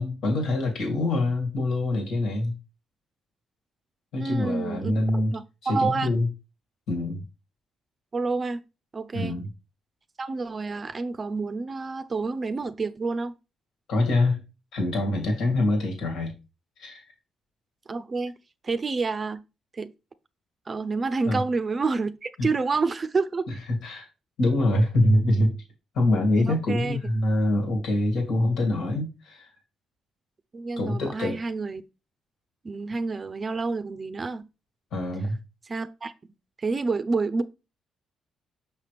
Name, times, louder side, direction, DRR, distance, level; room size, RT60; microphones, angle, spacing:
voice 1, 0.0-2.6 4.1-5.3 5.6-6.3 6.9-7.2 9.1-9.5 13.9-14.4 14.7-16.3 16.8-17.0 21.2-21.4 22.4-22.5 23.5-23.6 23.8-24.1 24.4-25.6 25.9-29.5 30.8-31.4 34.9-35.4, left 1 dB, 75° left, 2.3 m, -24 dB
voice 2, 4.2-6.1 8.1-8.6 8.9-9.4 10.2-13.4 17.9-18.3 18.6-19.4 19.7-19.9 20.7-23.5 26.5-27.0 30.5-31.8 32.6-34.5 35.7-36.3 36.6-37.4, right 4 dB, 35° right, 0.5 m, -28 dB
5.8 x 5.7 x 3.4 m
cardioid pair, 90°, 0 cm